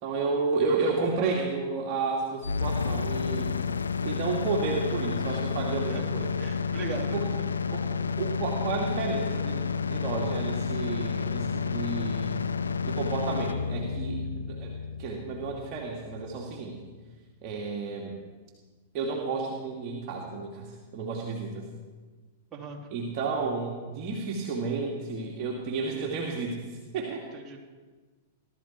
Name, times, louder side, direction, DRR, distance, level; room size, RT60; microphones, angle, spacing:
voice 1, 0.0-3.6 4.0-6.4 7.1-7.2 7.7-12.4 12.8-14.7 15.0-16.8 17.4-18.2 18.9-21.7 22.9-27.3, right 4 dB, 45° right, -1 dB, 2.4 m, -32 dB
sound 1, 2.4-16.4, left 5 dB, 85° left, 0.6 m, -30 dB
voice 2, 6.4-7.2 22.5-22.8 27.3-27.6, right 5 dB, 25° right, -1 dB, 3.3 m, -38 dB
19.0 x 13.0 x 4.5 m, 1.3 s
hypercardioid pair, 105°, 0 cm